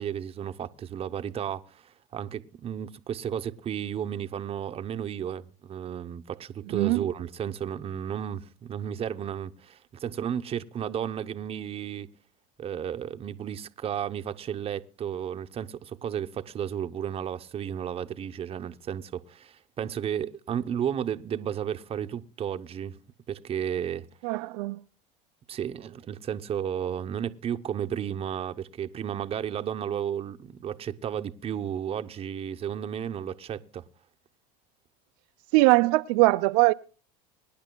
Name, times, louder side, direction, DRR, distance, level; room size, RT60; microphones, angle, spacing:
voice 1, 0.0-12.1 12.6-23.0 23.3-24.1 25.5-33.8, right 9 dB, 30° right, 0.8 m, -33 dB
voice 2, 24.2-24.8 35.5-36.7, right 22 dB, 70° right, 0.5 m, -21 dB
24.5 x 10.5 x 2.2 m
supercardioid pair, 110°, 20 cm